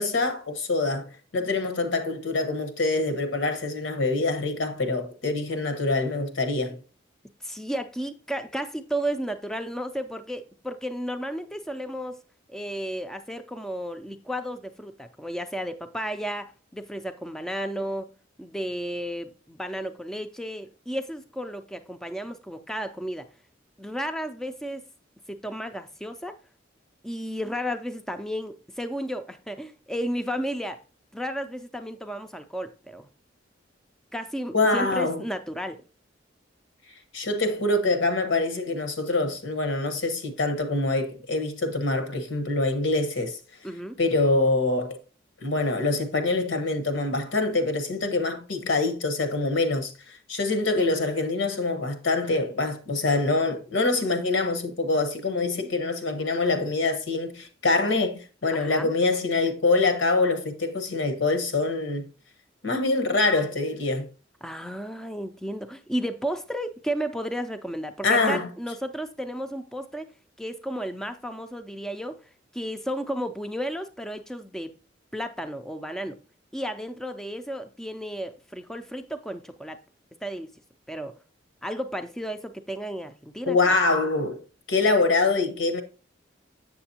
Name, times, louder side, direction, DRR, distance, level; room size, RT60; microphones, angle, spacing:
voice 1, 0.0-6.8 34.5-35.2 37.1-43.4 44.0-45.0 45.4-62.1 62.6-64.1 68.0-68.5 83.5-84.4 84.7-85.8, left 3 dB, 85° left, 1.2 m, -25 dB
voice 2, 7.4-12.2 12.5-18.1 18.4-23.3 23.8-24.8 25.3-26.4 27.0-30.8 31.1-33.1 34.1-35.8 43.6-44.0 58.5-58.9 64.4-70.1 70.4-72.2 72.5-74.7 75.1-76.2 76.5-79.8 80.2-80.5 80.9-81.1 81.6-83.8, equal, 5° left, 0.3 m, -33 dB
7.8 x 6.7 x 2.8 m
head